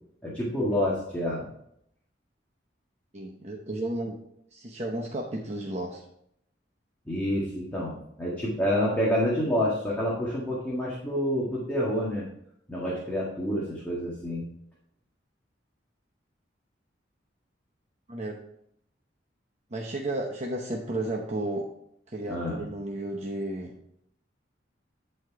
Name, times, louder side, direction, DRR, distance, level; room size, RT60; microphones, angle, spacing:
voice 1, 0.2-1.5 7.0-12.3 12.7-14.4 22.3-22.6, equal, 10° left, -6 dB, 1.7 m, -28 dB
voice 2, 3.1-4.2 4.5-6.0 18.1-18.4 19.7-21.7 22.1-23.7, right 1 dB, 40° right, 0 dB, 0.9 m, -33 dB
11.0 x 4.4 x 4.6 m, 0.74 s
head